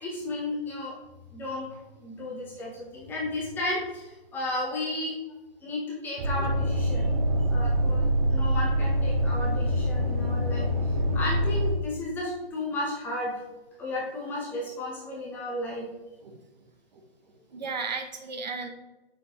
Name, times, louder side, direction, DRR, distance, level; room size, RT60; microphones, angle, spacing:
voice 1, 0.0-0.9 1.3-4.0 4.3-5.1 5.6-7.1 7.5-10.7 11.1-13.3 13.8-15.9, left 1 dB, 5° left, -5 dB, 0.9 m, -33 dB
sound 1, 6.2-11.7, equal, 15° right, 0.6 m, -25 dB
voice 2, 17.5-18.7, right 4 dB, 45° right, 6 dB, 0.9 m, -34 dB
8.3 x 6.1 x 3.1 m, 1.0 s
hypercardioid pair, 155°, 31 cm